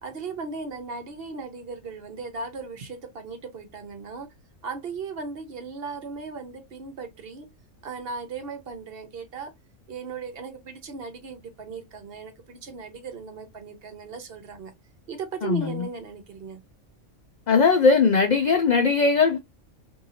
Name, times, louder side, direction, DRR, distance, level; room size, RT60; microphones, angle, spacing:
voice 1, 0.0-4.3 4.6-7.5 7.8-9.5 9.9-14.7 15.1-16.6, right 4 dB, 55° right, 0.8 m, -37 dB
voice 2, 15.4-15.7 17.5-19.4, left 4 dB, 80° left, 0.4 m, -19 dB
2.7 x 2.7 x 2.7 m
omnidirectional pair, 1.3 m